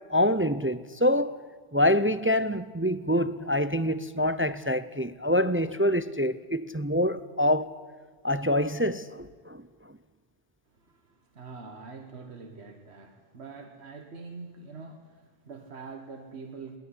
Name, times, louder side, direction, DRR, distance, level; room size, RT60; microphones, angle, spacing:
voice 1, 0.1-1.4 1.7-7.7 8.2-9.6, left 1 dB, 15° right, 0.4 m, -26 dB
voice 2, 10.7-16.8, right 4 dB, 85° right, 1.7 m, -44 dB
22.0 x 18.5 x 9.8 m
omnidirectional pair, 1.1 m